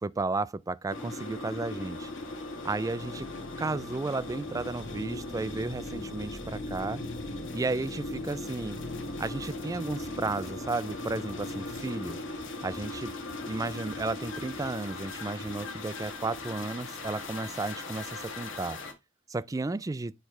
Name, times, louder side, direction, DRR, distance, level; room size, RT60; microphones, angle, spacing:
voice 1, 0.0-2.1 2.6-3.3 3.6-7.0 7.5-8.8 9.2-12.2 12.6-13.1 13.5-18.8 19.3-20.1, right 3 dB, 15° right, 0.3 m, -33 dB
sound 1, 0.9-18.9, left 2 dB, 65° left, 1.4 m, -38 dB
9.0 x 3.2 x 4.7 m
head